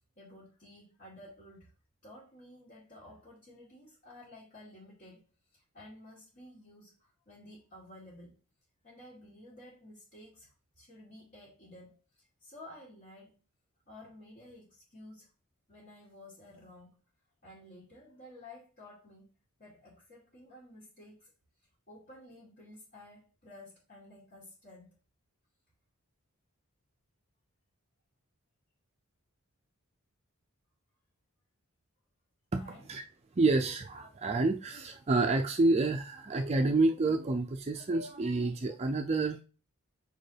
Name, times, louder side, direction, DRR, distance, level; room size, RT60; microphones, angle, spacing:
voice 1, 0.2-1.7 2.0-5.2 5.5-8.3 8.8-13.3 13.9-15.3 15.7-16.9 17.4-19.3 19.6-21.3 21.9-25.0 32.6-32.9, left 1 dB, 45° left, -9 dB, 2.6 m, -53 dB
voice 2, 33.3-39.4, right 3 dB, 30° right, 4 dB, 0.4 m, -28 dB
6.7 x 4.8 x 3.3 m, 0.34 s
head